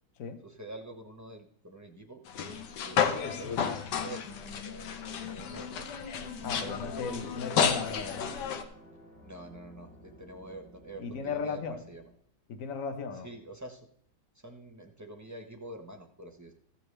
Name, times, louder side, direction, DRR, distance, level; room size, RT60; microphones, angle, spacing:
voice 1, 0.4-3.6 4.0-5.9 6.2-7.6 9.2-12.0 13.2-13.9 14.4-16.5, right 1 dB, 20° right, 2 dB, 0.5 m, -47 dB
sound 1, 2.3-8.6, left 7 dB, 70° left, 1.4 m, -32 dB
sound 2, 6.2-12.2, equal, 30° left, 2.5 m, -54 dB
voice 2, 6.4-8.3 11.0-11.8 12.5-13.3, left 5 dB, 50° left, 7 dB, 1.2 m, -36 dB
15.0 x 7.2 x 3.3 m, 0.65 s
omnidirectional pair, 2.0 m